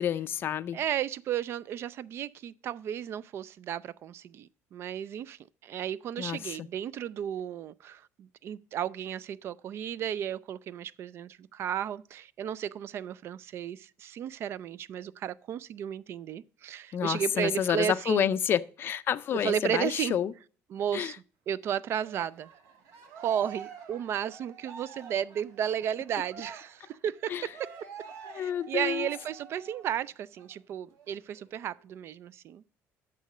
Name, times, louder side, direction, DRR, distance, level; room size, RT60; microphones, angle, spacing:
voice 1, 0.0-0.8 6.2-6.7 16.9-20.3 20.9-21.2 27.3-27.5 28.3-29.1, left 9 dB, 40° left, 0.4 m, -29 dB
voice 2, 0.7-18.3 19.4-20.2 20.7-21.1 21.5-22.5 23.2-27.3 28.3-32.7, right 9 dB, 45° right, 0.3 m, -34 dB
Cheering, 22.0-30.0 30.4-30.5 30.9-31.9, right 6 dB, 75° right, 2.0 m, -48 dB
8.3 x 6.6 x 4.9 m
cardioid pair, 150°, 6 cm